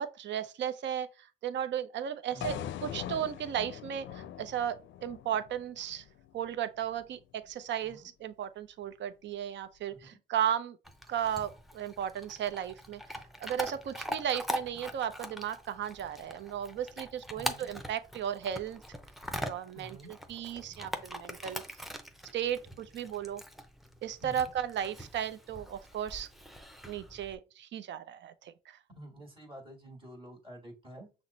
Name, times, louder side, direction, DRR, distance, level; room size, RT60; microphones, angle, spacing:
voice 1, 0.0-6.0 6.3-10.8 11.1-13.0 13.4-18.8 19.4-21.6 22.3-23.4 24.0-26.3 26.9-28.8, right 9 dB, 65° right, 0.6 m, -35 dB
voice 2, 2.3-2.7 7.8-8.1 9.9-10.2 17.3-17.7 19.7-20.1 24.2-24.5 28.9-31.2, right 1 dB, 25° right, 1.5 m, -49 dB
sound 1, 2.4-6.5, left 10 dB, 70° left, 0.5 m, -42 dB
Chewing mastication / Dog, 10.8-27.4, equal, ahead, 0.6 m, -42 dB
5.8 x 2.1 x 3.9 m
cardioid pair, 90°, 20 cm